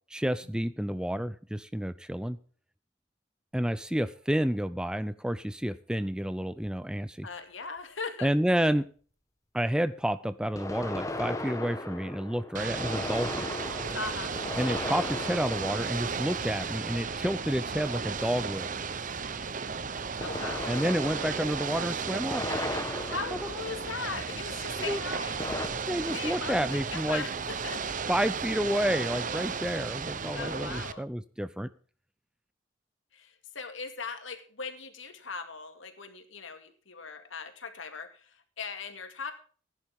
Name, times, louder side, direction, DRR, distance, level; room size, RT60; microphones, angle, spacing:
voice 1, 0.1-2.4 3.5-7.3 8.2-8.9 9.5-13.5 14.6-18.7 20.7-22.4 24.9-25.0 25.9-27.2 28.1-31.7, equal, 5° right, 14 dB, 0.5 m, -30 dB
sound 1, 6.6-6.7 10.6-17.1 20.2-24.4 25.4-25.7, left 2 dB, 15° left, 1.2 m, -37 dB
voice 2, 7.2-8.3 13.9-14.3 20.2-20.7 23.1-25.4 26.0-27.8 30.3-31.1 33.1-39.3, left 4 dB, 85° left, 7 dB, 2.3 m, -39 dB
Ocean / Boat Water vehicle, 12.5-30.9, right 5 dB, 40° right, 0.8 m, -34 dB
Water tap faucet / Bathtub (filling or washing), 14.1-20.6, left 2 dB, 35° left, 4.5 m, -57 dB
16.0 x 10.5 x 3.7 m, 0.41 s
head